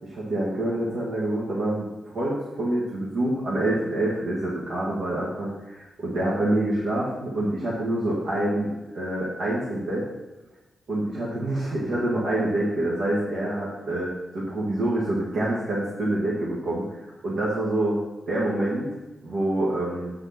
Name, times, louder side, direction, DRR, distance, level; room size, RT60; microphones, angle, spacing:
voice 1, 0.0-10.1 10.9-18.0 18.3-18.9 19.2-20.1, right 1 dB, 70° right, -7 dB, 2.0 m, -26 dB
8.2 x 4.9 x 6.1 m, 1.1 s
wide cardioid pair, 135°, 0 cm